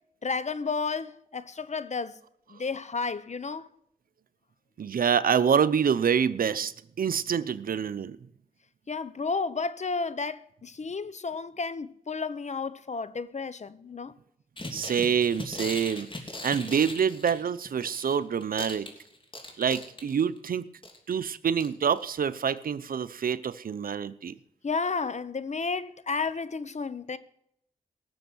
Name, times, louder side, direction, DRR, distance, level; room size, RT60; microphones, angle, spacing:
voice 1, 0.2-2.2 2.5-3.7 8.9-14.1 24.6-27.2, left 4 dB, 55° left, 0.9 m, -32 dB
voice 2, 4.8-6.7 7.0-8.2 14.7-16.1 16.4-18.9 19.6-20.7 21.1-24.4, right 7 dB, 80° right, 0.7 m, -26 dB
sound 1, 14.6-18.2 18.4-20.4 20.8-21.1 21.6-21.7 22.0-22.1, left 1 dB, 35° left, 3.1 m, -39 dB
18.0 x 7.0 x 6.2 m
cardioid pair, 55°, 15 cm